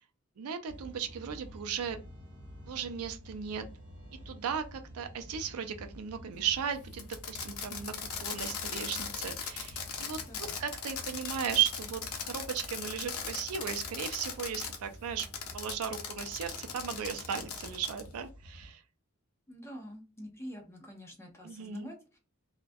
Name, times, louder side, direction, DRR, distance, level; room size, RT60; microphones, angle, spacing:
voice 1, 0.4-2.0 2.7-3.7 4.3-10.2 10.6-15.3 15.5-18.8 21.4-21.9, right 8 dB, 85° right, 8 dB, 0.4 m, -36 dB
sound 1, 0.7-18.7, equal, 60° right, 0.8 m, -50 dB
Fireworks, 6.9-14.8 15.2-18.1, left 7 dB, 80° left, 0.5 m, -39 dB
voice 2, 10.2-10.5 19.5-22.2, equal, 10° left, 1 dB, 0.5 m, -46 dB
2.3 x 2.1 x 2.5 m, 0.34 s
head